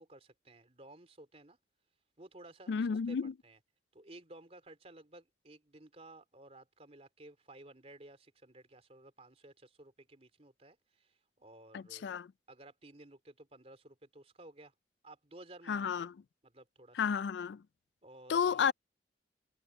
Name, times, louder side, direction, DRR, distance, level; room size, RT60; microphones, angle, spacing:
voice 1, 0.0-1.6 2.2-2.7 3.1-3.2 3.4-3.6 3.9-12.1 12.5-14.7 15.0-16.1 16.4-17.0 18.0-18.7, right 2 dB, 35° right, 3.2 m, -55 dB
voice 2, 2.7-3.3 11.7-12.3 15.7-16.1 16.9-17.6 18.3-18.7, left 6 dB, 80° left, 0.4 m, -32 dB
head